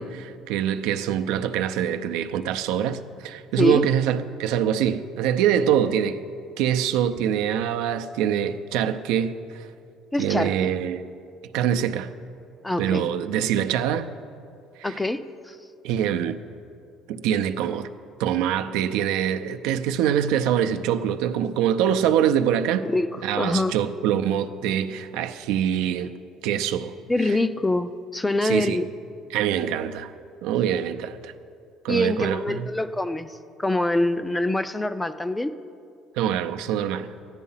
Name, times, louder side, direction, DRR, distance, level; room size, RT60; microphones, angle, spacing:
voice 1, 0.0-6.2 6.6-9.7 10.2-11.1 11.5-12.1 12.8-14.1 14.8-15.0 15.8-16.4 17.1-17.9 18.2-22.9 23.2-26.1 26.4-26.9 27.2-27.4 28.4-28.9 29.3-30.1 30.4-31.3 31.8-32.7 36.2-37.1, right 9 dB, 90° right, 0.6 m, -24 dB
voice 2, 3.6-3.9 10.1-10.7 12.6-13.1 14.8-15.6 22.8-23.1 23.3-23.7 27.1-28.9 31.9-35.5, left 2 dB, 10° left, 0.3 m, -25 dB
13.5 x 10.5 x 5.6 m
cardioid pair, 150°, 0 cm